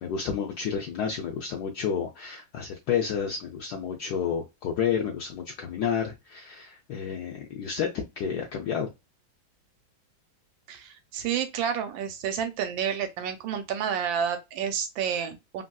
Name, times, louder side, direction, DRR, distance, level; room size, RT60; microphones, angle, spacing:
voice 1, 0.0-8.9, left 7 dB, 80° left, 0.9 m, -30 dB
voice 2, 10.7-15.6, right 8 dB, 75° right, 1.3 m, -30 dB
3.2 x 2.6 x 2.2 m
omnidirectional pair, 2.2 m